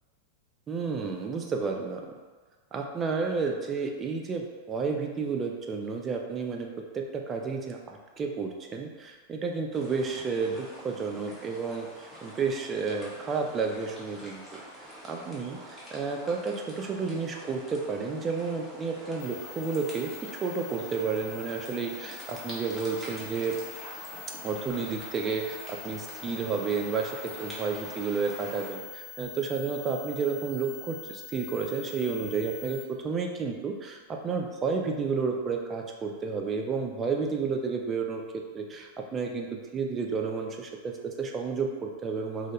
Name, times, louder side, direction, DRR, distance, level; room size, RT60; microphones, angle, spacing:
voice 1, 0.7-2.0 2.7-6.7 6.9-14.4 14.8-20.1 20.4-23.6 24.4-42.5, right 5 dB, 25° right, 2 dB, 0.3 m, -31 dB
sound 1, 9.7-28.7, equal, 5° right, 0.7 m, -46 dB
sound 2, 19.2-32.8, left 5 dB, 60° left, 0.4 m, -45 dB
2.1 x 2.0 x 2.9 m, 1.4 s
figure-of-eight pair, 90°, 0 cm